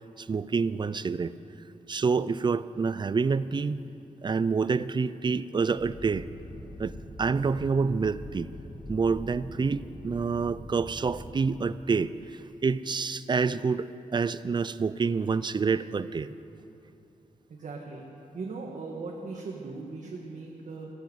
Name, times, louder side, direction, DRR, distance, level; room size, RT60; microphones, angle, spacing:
voice 1, 0.2-1.3 1.9-3.8 4.2-6.3 6.8-8.5 8.9-16.3, right 5 dB, 35° right, 16 dB, 0.4 m, -27 dB
sound 1, 5.8-11.3, left 1 dB, 40° left, 2.0 m, -43 dB
voice 2, 17.5-18.0 18.3-20.9, right 3 dB, 65° right, -1 dB, 1.5 m, -38 dB
15.5 x 10.5 x 7.8 m, 2.9 s
wide cardioid pair, 140°, 14 cm